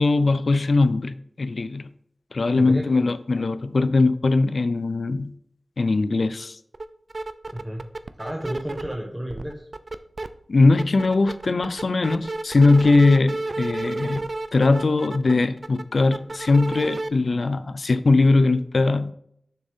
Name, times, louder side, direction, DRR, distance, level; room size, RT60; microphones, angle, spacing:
voice 1, 0.0-1.9 2.3-5.3 5.8-6.6 10.5-14.2 14.5-19.1, left 3 dB, 70° left, 14 dB, 0.4 m, -20 dB
voice 2, 2.5-3.1 3.3-3.4 7.5-7.8 8.2-9.7, equal, 5° right, -1 dB, 1.1 m, -32 dB
sound 1, 6.7-6.8 7.1-9.0 9.3-10.3 10.6-17.1, right 2 dB, 55° right, 0.4 m, -31 dB
6.8 x 6.4 x 3.6 m, 0.70 s
wide cardioid pair, 75°, 0 cm